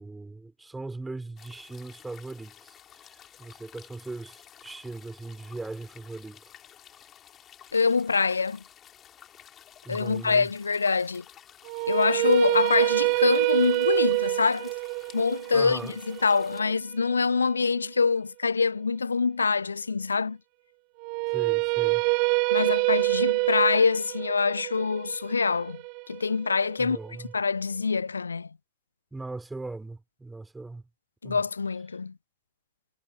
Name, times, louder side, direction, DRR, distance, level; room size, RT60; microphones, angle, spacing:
voice 1, 0.0-6.5 9.8-10.5 15.5-16.0 21.3-22.0 26.8-27.3 29.1-30.8 31.2-31.4, right 2 dB, 10° right, 5.7 m, -39 dB
sound 1, 1.4-16.6, left 10 dB, 25° left, 3.5 m, -52 dB
voice 2, 7.7-8.6 9.9-11.2 11.9-14.7 15.1-15.8 16.1-20.4 22.5-25.8 26.1-27.0 27.3-28.5 31.2-32.1, left 4 dB, 75° left, 0.7 m, -25 dB
sound 2, 11.7-17.8 21.0-27.1, right 40 dB or more, 45° right, 1.0 m, -26 dB
figure-of-eight pair, 90°, 0 cm